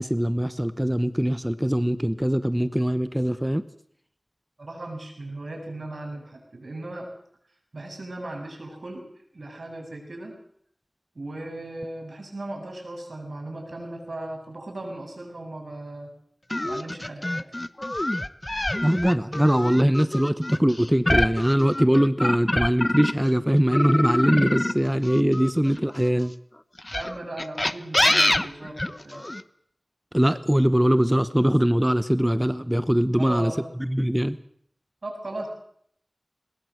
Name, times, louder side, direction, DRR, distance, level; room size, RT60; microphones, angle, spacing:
voice 1, 0.0-3.6 18.8-26.3 30.1-33.5 33.8-34.4, equal, 10° right, 13 dB, 0.9 m, -22 dB
voice 2, 4.6-7.1 7.7-9.0 9.3-10.4 11.2-16.1 16.7-17.5 26.9-29.3 33.2-33.7 35.0-35.5, right 1 dB, 80° right, 2 dB, 7.4 m, -37 dB
sound 1, 16.5-23.3 23.7-26.1 26.8-29.4, left 1 dB, 30° left, 1.0 m, -25 dB
21.5 x 21.0 x 7.9 m, 0.68 s
wide cardioid pair, 60°, 0 cm